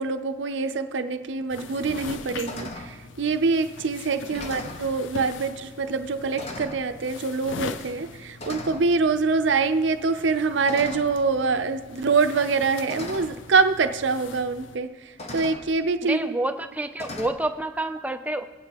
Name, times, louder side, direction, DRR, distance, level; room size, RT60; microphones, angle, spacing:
voice 1, 0.0-16.4, right 4 dB, 65° right, 0.5 m, -25 dB
sound 1, 1.4-1.5 2.0-2.2 2.5-2.9 3.8-3.9 4.2-4.9 5.8-6.0 6.4-6.9 7.8-8.0 8.4-8.9 10.6-11.3 12.3-12.4 12.9-13.4 14.5-14.6 15.2-15.7 17.0-17.3, left 1 dB, 35° left, 0.8 m, -38 dB
sound 2, 1.5-14.8, left 4 dB, 75° left, 0.4 m, -42 dB
voice 2, 16.1-18.4, right 1 dB, 10° right, 0.4 m, -28 dB
17.5 x 8.4 x 3.0 m
head